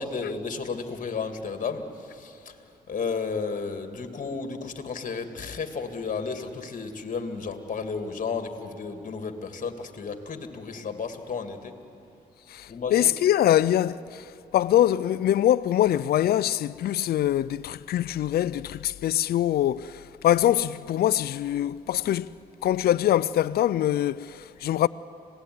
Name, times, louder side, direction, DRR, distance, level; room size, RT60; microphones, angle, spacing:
voice 1, 0.0-2.5 2.9-11.7 12.7-13.1 24.6-24.7, left 5 dB, 50° left, 2.5 m, -33 dB
voice 2, 12.5-14.3 14.5-22.3 22.6-24.9, left 12 dB, 70° left, 0.5 m, -23 dB
26.0 x 18.0 x 9.6 m
cardioid pair, 65°, 17 cm